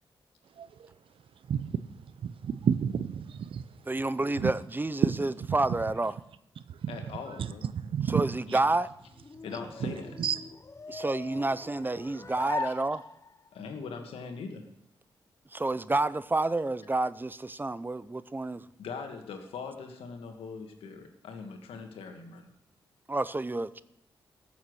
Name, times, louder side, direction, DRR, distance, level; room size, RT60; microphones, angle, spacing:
voice 1, 2.2-3.6 4.4-4.5 7.9-8.2 10.2-10.4, right 8 dB, 70° right, 0.6 m, -29 dB
voice 2, 3.9-6.2 8.0-8.9 10.9-13.0 15.5-18.6 23.1-23.8, right 2 dB, 20° right, 0.6 m, -29 dB
voice 3, 6.9-7.7 9.4-10.2 12.7-12.8 13.5-14.6 18.8-22.5, left 5 dB, 90° left, 1.7 m, -41 dB
sound 1, 8.6-13.5, left 3 dB, 30° left, 0.8 m, -40 dB
14.0 x 7.1 x 6.3 m
cardioid pair, 55°, 9 cm